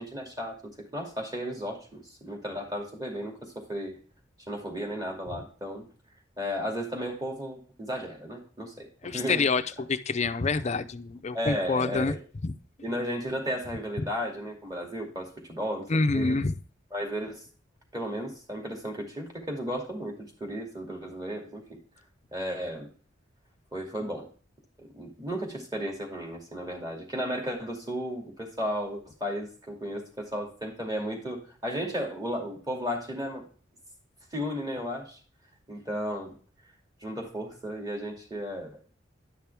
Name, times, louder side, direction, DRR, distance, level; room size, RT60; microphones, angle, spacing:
voice 1, 0.0-4.0 4.5-5.9 6.4-9.4 11.3-12.2 12.8-16.4 16.9-17.4 17.9-21.6 22.3-22.9 23.7-24.3 24.8-33.5 34.3-35.2 35.7-36.3 37.0-39.0, equal, 20° right, 1 dB, 2.4 m, -34 dB
voice 2, 9.0-9.6 9.9-12.1 12.4-12.5 15.9-16.5, left 3 dB, 35° left, 9 dB, 0.6 m, -27 dB
10.5 x 5.9 x 3.5 m, 0.41 s
head